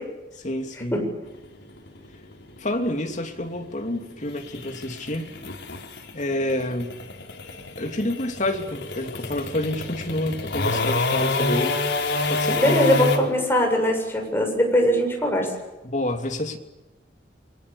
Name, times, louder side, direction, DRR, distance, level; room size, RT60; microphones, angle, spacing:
voice 1, 0.4-1.0 2.6-5.3 6.1-7.0 7.8-11.8 12.3-12.6 15.8-16.6, left 1 dB, 45° left, 4 dB, 2.9 m, -28 dB
sound 1, 1.3-13.2, left 3 dB, 75° left, 4.7 m, -27 dB
voice 2, 12.6-15.5, equal, 15° left, 1 dB, 7.3 m, -21 dB
29.0 x 24.0 x 7.1 m, 1.1 s
head